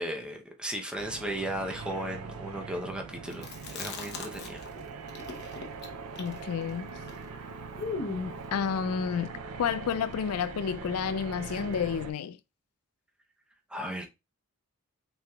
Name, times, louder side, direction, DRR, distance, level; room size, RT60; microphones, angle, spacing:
voice 1, 0.0-4.6 13.7-14.1, right 1 dB, 5° right, 0.7 m, -36 dB
sound 1, 1.0-12.1, right 4 dB, 80° right, 0.5 m, -42 dB
Chewing mastication, 3.3-4.8 5.1-8.5, left 4 dB, 50° left, 0.9 m, -38 dB
voice 2, 6.2-6.9 8.5-9.3 9.6-12.4, left 7 dB, 80° left, 0.4 m, -30 dB
5.7 x 3.4 x 2.3 m
head